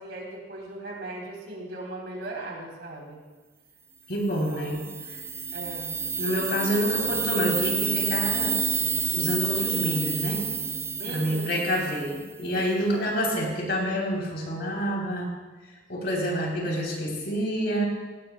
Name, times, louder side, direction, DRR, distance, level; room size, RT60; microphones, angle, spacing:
voice 1, 0.0-3.2 4.2-4.7 5.5-6.0 11.0-11.7 12.9-13.1, right 2 dB, 75° right, -1 dB, 3.8 m, -38 dB
voice 2, 4.1-4.8 6.2-8.6 9.1-10.5 11.1-15.3 15.9-17.9, equal, 65° left, -1 dB, 3.7 m, -28 dB
sound 1, 4.4-12.3, right 6 dB, 15° right, 0.3 m, -29 dB
18.0 x 17.0 x 2.3 m, 1.3 s
head